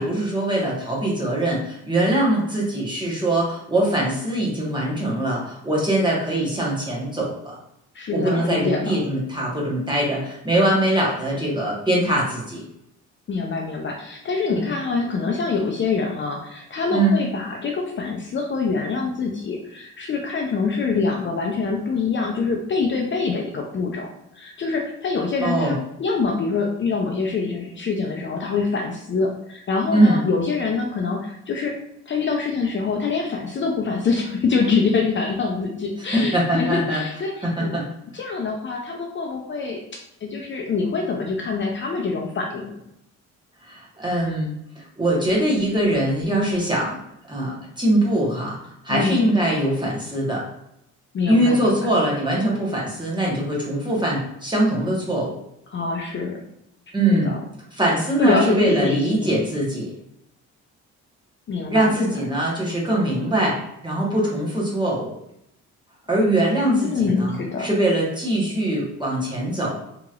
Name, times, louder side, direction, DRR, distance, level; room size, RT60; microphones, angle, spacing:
voice 1, 0.0-7.6 8.1-12.6 14.5-14.6 16.9-17.2 25.4-25.7 29.9-30.2 36.1-37.0 37.4-37.8 43.7-44.5 45.0-47.0 47.3-48.6 48.8-50.4 51.2-55.4 56.9-57.3 57.7-59.9 61.7-63.6 63.8-65.2 66.1-69.8, right 1 dB, 15° right, -4 dB, 1.1 m, -22 dB
voice 2, 7.9-8.9 13.3-31.7 32.1-37.7 38.1-42.8 48.9-49.3 51.1-51.9 55.7-56.4 57.1-57.4 58.2-59.4 61.5-62.1 66.7-67.7, left 4 dB, 40° left, 1 dB, 0.5 m, -25 dB
2.9 x 2.9 x 2.4 m, 0.78 s
cardioid pair, 90°, 30 cm